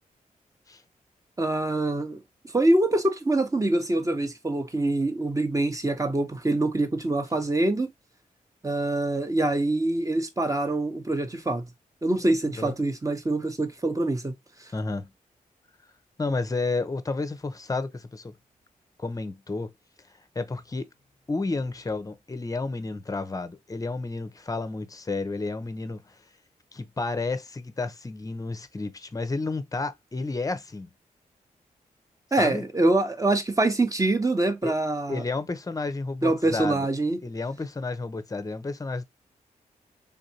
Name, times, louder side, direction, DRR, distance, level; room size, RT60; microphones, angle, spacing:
voice 1, 1.4-2.2 2.5-7.9 8.6-11.7 12.0-14.3 32.3-35.2 36.2-37.2, right 2 dB, 20° right, 0.8 m, -25 dB
voice 2, 14.7-15.1 16.2-18.3 19.0-19.7 20.4-20.9 21.3-26.1 26.7-30.9 32.4-32.6 34.6-34.7 35.1-36.9 37.2-39.0, left 3 dB, 25° left, 0.6 m, -31 dB
3.6 x 2.5 x 2.7 m
cardioid pair, 60°, 15 cm